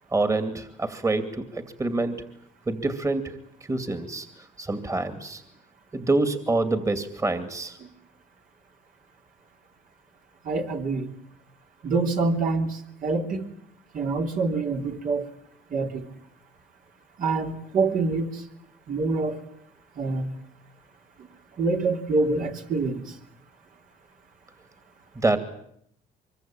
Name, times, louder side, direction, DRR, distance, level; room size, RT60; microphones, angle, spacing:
voice 1, 0.1-2.2 2.7-3.4 3.7-4.3 4.6-5.4 5.9-7.8 25.2-25.4, right 2 dB, 20° right, 9 dB, 2.6 m, -26 dB
voice 2, 10.5-11.1 11.8-12.7 13.0-13.4 13.9-15.2 15.7-16.0 17.2-18.3 18.9-19.4 20.0-20.3 21.6-23.0, right 3 dB, 55° right, 2 dB, 3.4 m, -25 dB
24.5 x 23.0 x 9.1 m, 0.71 s
cardioid pair, 110°, 17 cm